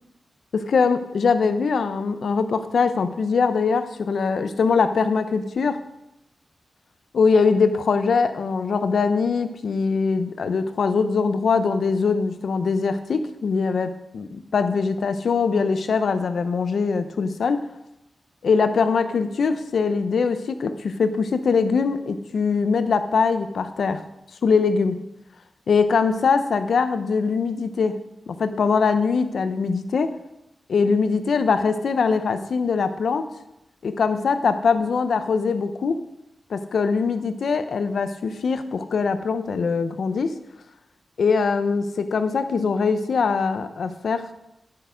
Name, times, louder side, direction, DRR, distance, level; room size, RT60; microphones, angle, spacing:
voice 1, 0.5-5.8 7.1-17.7 18.4-24.0 24.4-24.9 25.7-30.2 30.7-33.3 33.8-36.0 36.5-40.4 41.2-44.3, left 5 dB, 80° left, 10 dB, 0.7 m, -22 dB
10.5 x 6.7 x 5.1 m, 0.88 s
wide cardioid pair, 115°, 0 cm